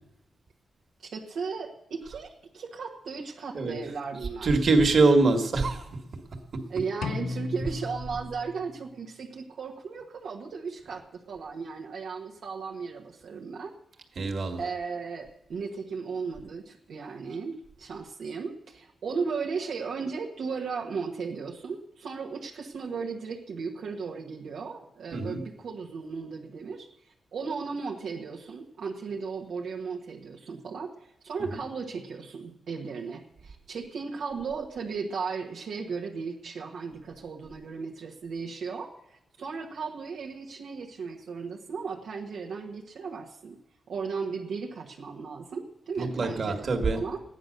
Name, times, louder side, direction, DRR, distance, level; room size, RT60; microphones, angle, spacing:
voice 1, 1.0-4.7 6.7-13.7 14.6-43.5 43.9-47.2, right 5 dB, 75° right, -1 dB, 1.3 m, -36 dB
voice 2, 4.4-5.8 14.2-14.7 25.1-25.4 46.0-47.0, right 3 dB, 50° right, 4 dB, 2.0 m, -23 dB
sound 1, 7.0-9.0, left 3 dB, 80° left, 0.7 m, -35 dB
14.5 x 9.9 x 6.6 m, 0.90 s
wide cardioid pair, 125°, 0 cm